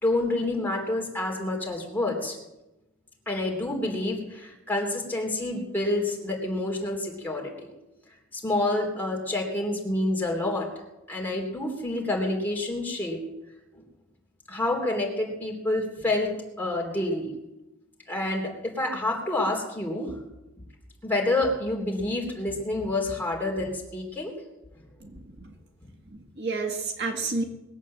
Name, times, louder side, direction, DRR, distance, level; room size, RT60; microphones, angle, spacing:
voice 1, 0.0-2.4 3.3-7.7 8.3-10.7 11.1-13.2 13.7-13.8 14.5-16.3 16.6-17.3 18.1-20.2 21.0-24.3, left 2 dB, 10° left, -1 dB, 3.3 m, -28 dB
voice 2, 25.0-25.5 26.1-27.4, right 3 dB, 50° right, 3 dB, 1.7 m, -31 dB
20.5 x 8.2 x 7.6 m, 0.98 s
head